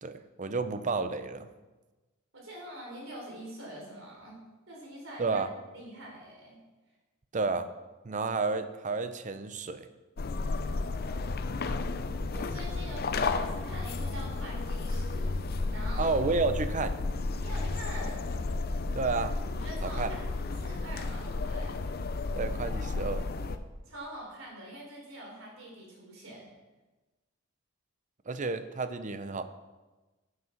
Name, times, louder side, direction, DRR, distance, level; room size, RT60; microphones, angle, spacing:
voice 1, 0.0-1.5 5.2-5.5 7.3-7.7 8.0-9.9 16.0-16.9 18.9-19.3 19.8-20.1 22.4-23.2 28.3-29.4, right 4 dB, 40° right, 11 dB, 0.6 m, -31 dB
voice 2, 2.3-4.4 4.7-5.4 5.7-6.6 11.6-11.8 12.3-15.3 15.7-16.2 17.4-18.3 19.5-21.8 23.9-26.5, right 1 dB, 75° right, -2 dB, 3.8 m, -44 dB
sound 1, 10.2-23.6, left 3 dB, 50° left, 0.6 m, -32 dB
9.5 x 7.9 x 5.9 m, 1.2 s
head